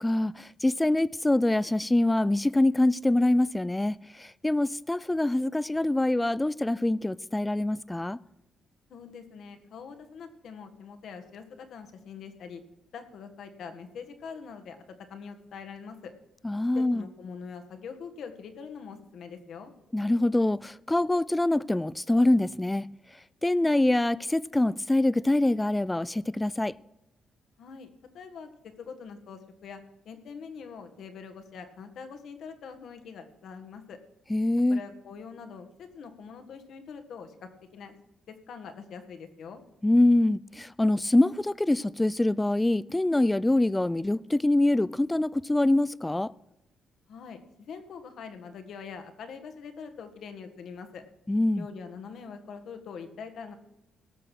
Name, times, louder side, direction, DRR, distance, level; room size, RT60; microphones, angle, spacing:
voice 1, 0.0-8.2 16.4-17.0 19.9-22.9 23.4-26.7 34.3-34.8 39.8-46.3 51.3-51.7, left 1 dB, 10° left, 0.4 m, -24 dB
voice 2, 8.9-12.6 12.9-16.1 16.7-19.7 27.6-27.9 28.1-29.8 30.0-34.0 34.7-38.0 38.3-39.6 47.1-51.0 51.6-53.6, left 6 dB, 70° left, 1.6 m, -43 dB
18.0 x 6.7 x 6.1 m
cardioid pair, 80°, 0 cm